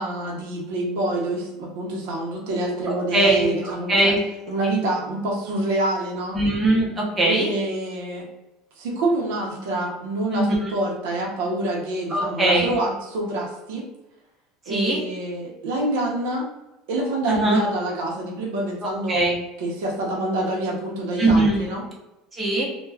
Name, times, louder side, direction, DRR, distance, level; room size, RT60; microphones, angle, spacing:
voice 1, 0.0-4.1 4.5-6.4 7.2-8.3 8.8-13.8 14.7-16.5 16.9-19.2 19.6-21.8, right 2 dB, 80° right, -2 dB, 0.7 m, -26 dB
voice 2, 3.1-4.2 6.3-7.5 10.3-10.6 12.1-12.7 14.7-15.0 17.3-17.6 19.1-19.3 21.2-21.6 22.4-22.6, right 2 dB, 15° right, -3 dB, 0.7 m, -20 dB
2.3 x 2.2 x 3.3 m, 1.0 s
cardioid pair, 150°, 0 cm